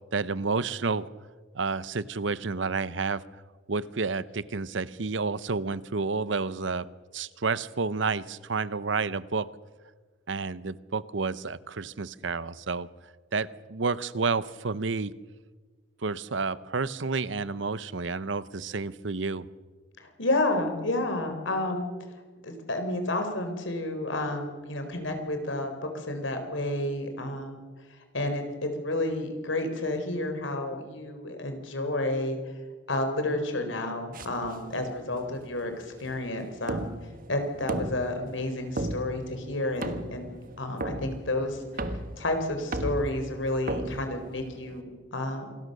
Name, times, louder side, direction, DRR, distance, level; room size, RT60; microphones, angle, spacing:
voice 1, 0.1-1.1 1.5-3.2 3.7-6.9 7.1-9.5 10.3-12.9 13.3-15.1 16.0-19.5, right 4 dB, 70° right, 17 dB, 0.8 m, -30 dB
voice 2, 20.0-21.9 22.4-27.7 28.1-32.4 32.9-36.9 37.3-45.5, left 1 dB, 75° left, 6 dB, 4.1 m, -31 dB
sound 1, 34.1-44.8, right 1 dB, 45° right, 1.5 m, -37 dB
27.5 x 20.0 x 6.7 m, 1.4 s
head